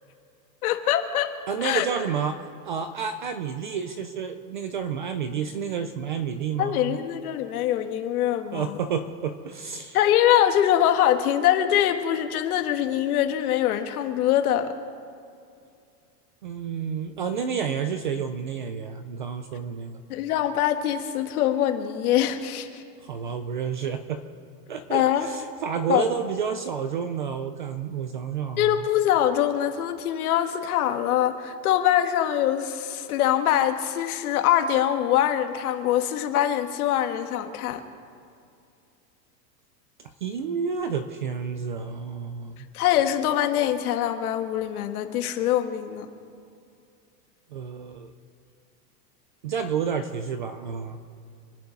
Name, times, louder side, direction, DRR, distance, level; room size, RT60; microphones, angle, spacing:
voice 1, 0.6-1.3 1.6-1.9 6.6-8.8 9.9-14.7 20.1-22.8 24.9-25.3 25.9-26.1 28.6-37.8 42.7-46.1, left 11 dB, 60° left, 6 dB, 1.6 m, -23 dB
voice 2, 1.5-2.4 2.6-7.0 8.5-10.0 16.4-20.0 23.0-24.2 24.7-28.8 40.2-42.7 47.5-48.1 49.4-51.0, right 6 dB, 35° right, 8 dB, 0.4 m, -30 dB
28.0 x 9.5 x 5.2 m, 2.4 s
supercardioid pair, 175°, 49 cm